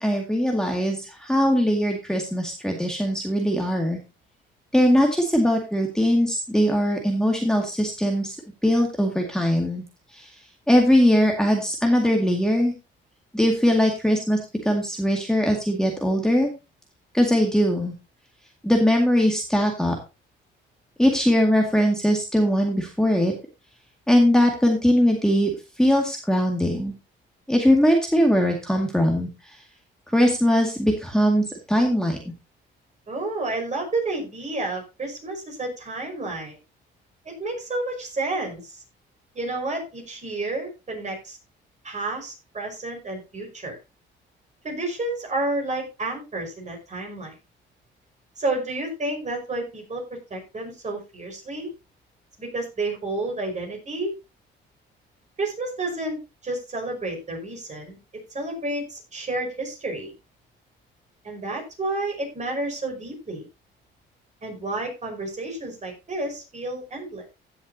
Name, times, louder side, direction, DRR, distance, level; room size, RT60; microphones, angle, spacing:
voice 1, 0.0-4.0 4.7-8.4 8.6-9.8 10.2-10.3 10.7-12.7 13.3-14.4 14.6-16.5 17.1-17.9 18.6-19.9 21.0-23.3 24.1-25.5 25.8-26.9 27.5-29.3 30.1-32.2, equal, 5° left, 1 dB, 2.0 m, -21 dB
voice 2, 33.1-36.6 37.3-38.8 39.4-41.4 41.8-43.8 44.6-47.3 48.4-51.7 52.4-54.2 55.4-58.0 58.3-60.1 61.2-63.5 64.4-67.3, right 2 dB, 35° right, 2 dB, 5.3 m, -30 dB
15.5 x 7.3 x 2.8 m, 0.27 s
cardioid pair, 90°, 20 cm